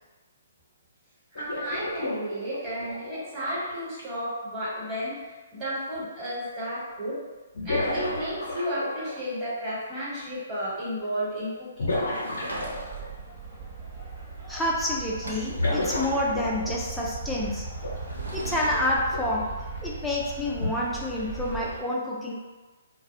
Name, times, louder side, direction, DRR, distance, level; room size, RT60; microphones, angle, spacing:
sound 1, 1.3-4.0 6.0-6.1 7.5-9.3 11.8-13.1 15.5-17.0 17.8-18.0 19.1-19.3 20.6-20.7, left 2 dB, 65° left, 0.6 m, -31 dB
voice 1, 1.3-7.2 7.6-11.9, equal, 20° right, -10 dB, 1.1 m, -33 dB
Sliding door / Wood, 12.0-13.2 14.7-14.8 15.0-16.2 17.9-18.9, right 1 dB, 85° right, 0.6 m, -39 dB
sound 2, 12.5-21.8, right 3 dB, 45° right, 0.6 m, -38 dB
voice 2, 14.5-17.7 18.3-19.5 19.8-22.3, left 1 dB, 5° left, -5 dB, 0.4 m, -28 dB
2.2 x 2.0 x 2.7 m, 1.2 s
figure-of-eight pair, 125°, 0 cm